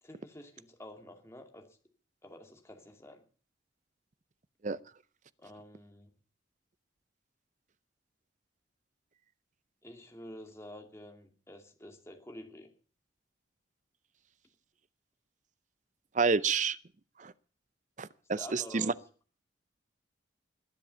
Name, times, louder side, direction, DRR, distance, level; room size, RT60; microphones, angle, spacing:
voice 1, 0.0-1.8 2.2-3.2 5.4-6.1 9.8-12.7 18.4-18.9, left 1 dB, 15° left, 2.4 m, -49 dB
voice 2, 16.1-16.8 17.2-17.3 18.0-18.9, right 4 dB, 40° right, 0.6 m, -29 dB
21.5 x 7.7 x 6.9 m
head